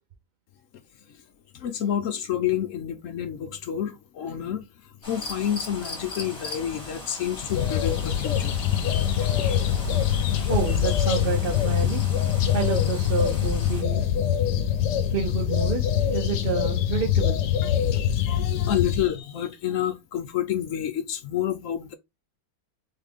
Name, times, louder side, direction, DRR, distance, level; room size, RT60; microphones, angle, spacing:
voice 1, 1.5-8.6 9.2-10.4 17.6-21.9, left 10 dB, 65° left, 0.8 m, -30 dB
sound 1, 5.0-13.8, left 1 dB, 20° left, 1.4 m, -37 dB
sound 2, 7.5-19.1, left 10 dB, 85° left, 1.3 m, -24 dB
voice 2, 10.5-12.0 12.5-14.1 15.1-17.4, right 5 dB, 50° right, 0.6 m, -29 dB
4.0 x 3.7 x 3.5 m
omnidirectional pair, 1.8 m